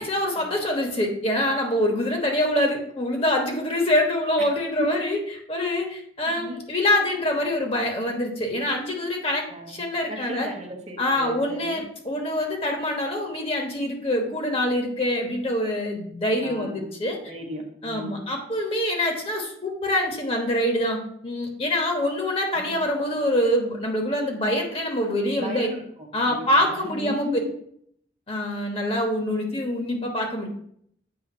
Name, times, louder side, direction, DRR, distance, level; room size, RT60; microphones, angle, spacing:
voice 1, 0.0-5.2 5.5-10.5 11.0-17.2 17.8-25.7 26.1-27.3 28.3-30.5, left 1 dB, 30° left, 2 dB, 1.1 m, -25 dB
voice 2, 6.3-6.6 9.5-11.8 16.4-16.9 17.2-18.3 22.5-22.8 25.4-27.4, equal, 35° right, 3 dB, 1.1 m, -36 dB
7.9 x 3.3 x 5.4 m, 0.67 s
head